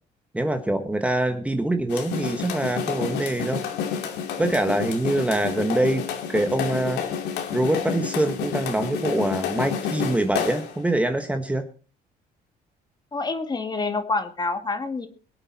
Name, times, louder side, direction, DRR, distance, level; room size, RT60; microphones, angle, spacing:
voice 1, 0.3-3.6 4.4-7.0 7.5-11.7, right 1 dB, 10° right, 6 dB, 1.3 m, -24 dB
sound 1, 1.9-10.8, left 7 dB, 80° left, 2.7 m, -30 dB
voice 2, 13.1-15.1, left 3 dB, 25° left, 8 dB, 2.1 m, -27 dB
23.0 x 8.8 x 4.2 m, 0.37 s
cardioid pair, 110°, 17 cm